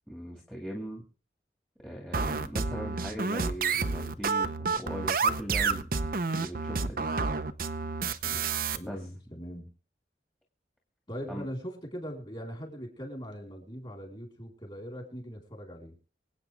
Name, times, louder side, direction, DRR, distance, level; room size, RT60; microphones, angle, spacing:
voice 1, 0.1-1.0 1.8-5.9 6.3-7.1 8.2-8.4 8.9-9.0 11.3-11.4, equal, 5° left, -1 dB, 2.1 m, -39 dB
sound 1, 2.1-8.8, right 4 dB, 55° right, 0.9 m, -29 dB
voice 2, 8.7-9.7 11.1-15.9, equal, 30° left, 1 dB, 4.3 m, -40 dB
24.5 x 8.7 x 3.5 m, 0.38 s
head